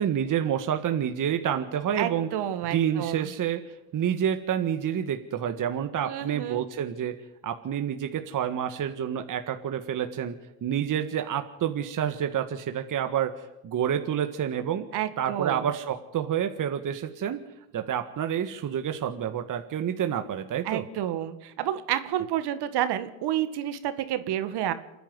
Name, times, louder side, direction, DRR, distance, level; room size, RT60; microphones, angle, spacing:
voice 1, 0.0-2.3 2.7-3.6 3.9-7.2 7.4-14.9 15.2-17.4 17.7-20.8, right 9 dB, 45° right, 7 dB, 1.7 m, -28 dB
voice 2, 2.0-3.3 6.0-6.6 14.9-15.6 20.7-24.7, right 11 dB, 65° right, 11 dB, 2.0 m, -30 dB
27.5 x 10.5 x 9.7 m, 0.98 s
supercardioid pair, 80°, 43 cm